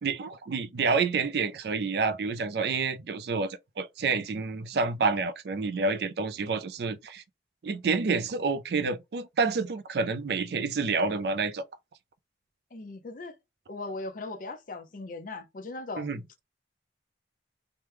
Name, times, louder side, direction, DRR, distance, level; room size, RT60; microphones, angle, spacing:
voice 1, 0.0-7.2 7.6-11.6 16.0-16.2, right 4 dB, 60° right, 0.4 m, -28 dB
voice 2, 12.7-13.4 13.7-16.1, left 2 dB, 50° left, 0.6 m, -38 dB
3.0 x 2.2 x 3.3 m
head